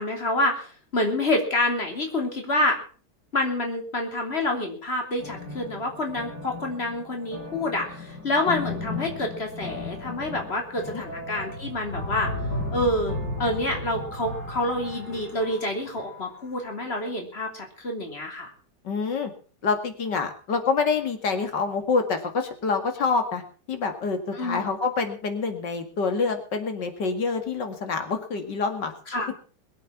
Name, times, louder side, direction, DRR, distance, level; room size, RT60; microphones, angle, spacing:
voice 1, 0.0-2.8 3.3-12.3 12.7-18.5 24.3-24.6 29.1-29.3, left 1 dB, 35° left, 2 dB, 3.4 m, -27 dB
sound 1, 5.2-16.6, left 2 dB, 60° left, 5.6 m, -35 dB
voice 2, 18.8-19.3 19.6-23.4 23.7-28.9, left 4 dB, 90° left, 6 dB, 2.8 m, -26 dB
22.0 x 8.3 x 5.9 m, 0.41 s
omnidirectional pair, 1.8 m